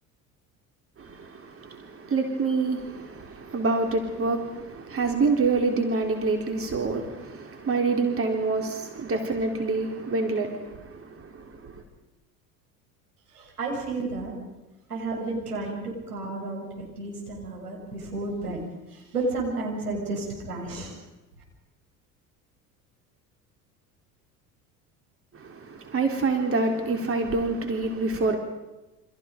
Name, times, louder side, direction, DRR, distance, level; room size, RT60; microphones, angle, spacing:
voice 1, 1.0-11.8 25.3-28.4, right 3 dB, 30° right, 3.7 m, -27 dB
voice 2, 13.3-14.3 14.9-18.6 18.9-20.9, right 2 dB, 80° right, 6.7 m, -32 dB
28.5 x 26.0 x 5.2 m
figure-of-eight pair, 65°, 46 cm